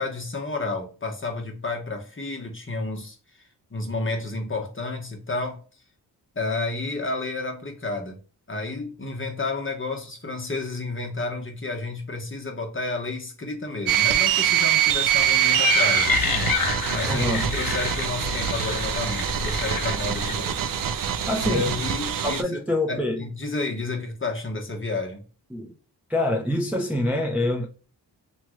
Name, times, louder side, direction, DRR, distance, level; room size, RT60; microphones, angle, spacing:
voice 1, 0.0-3.2 3.7-5.6 6.3-8.2 8.5-16.6 16.9-20.6 21.4-25.2, left 3 dB, 30° left, 1.0 m, -31 dB
sound 1, 13.9-22.4, right 10 dB, 55° right, 0.4 m, -24 dB
sound 2, 15.2-20.3, left 4 dB, 50° left, 0.9 m, -27 dB
voice 2, 17.1-17.5 21.3-21.7 22.2-23.3 25.5-25.7 26.1-27.7, left 1 dB, 5° right, 0.5 m, -25 dB
3.0 x 2.3 x 3.0 m
cardioid pair, 75°, 43 cm